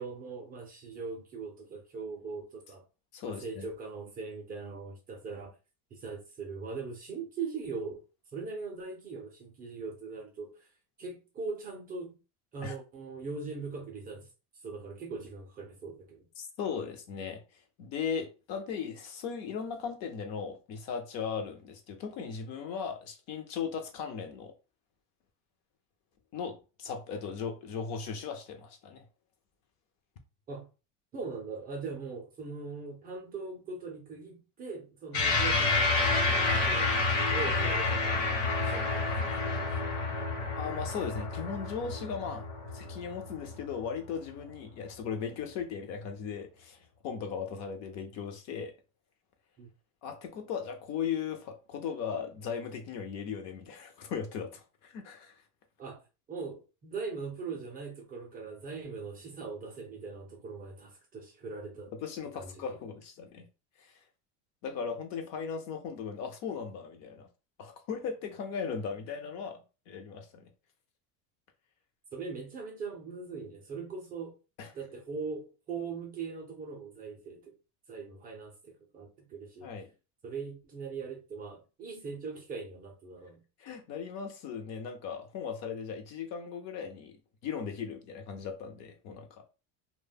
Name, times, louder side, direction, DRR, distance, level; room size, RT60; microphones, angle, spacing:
voice 1, 0.0-2.8 3.2-5.5 5.9-8.0 8.3-10.7 11.0-12.2 12.5-14.3 14.6-16.3 30.5-30.7 31.1-37.0 37.3-40.7 49.6-49.7 55.8-56.0 56.3-61.9 62.3-62.6 72.1-74.4 74.7-77.4 77.9-79.7 80.2-83.4, right 4 dB, 25° right, 0.4 m, -41 dB
voice 2, 3.1-3.6 12.6-12.7 16.4-17.4 17.8-24.5 26.3-29.0 40.6-42.5 42.7-46.8 47.0-48.7 50.0-55.3 62.0-63.5 64.6-67.3 67.6-69.6 69.9-70.5 74.6-74.7 79.6-79.9 83.6-87.1 87.4-89.3, left 6 dB, 45° left, 0.5 m, -37 dB
sound 1, 35.1-43.8, left 3 dB, 65° left, 1.0 m, -29 dB
2.2 x 2.0 x 3.3 m
cardioid pair, 155°, 38 cm